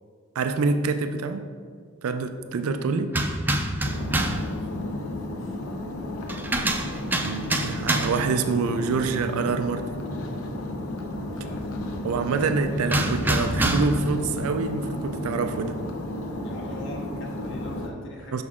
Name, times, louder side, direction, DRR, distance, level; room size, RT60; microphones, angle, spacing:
voice 1, 0.4-1.5 2.0-3.2 7.2-9.8 12.0-15.8 18.3-18.4, right 4 dB, 85° right, 8 dB, 0.4 m, -26 dB
sound 1, 3.1-4.5 6.3-8.3 12.9-14.1, right 1 dB, 10° right, 0.4 m, -26 dB
sound 2, 3.8-17.9, left 1 dB, 80° left, 0.7 m, -33 dB
voice 2, 4.7-5.6 11.3-11.7 12.7-12.9 16.4-18.4, left 1 dB, 60° left, -1 dB, 1.3 m, -43 dB
6.3 x 5.9 x 3.6 m, 2.1 s
head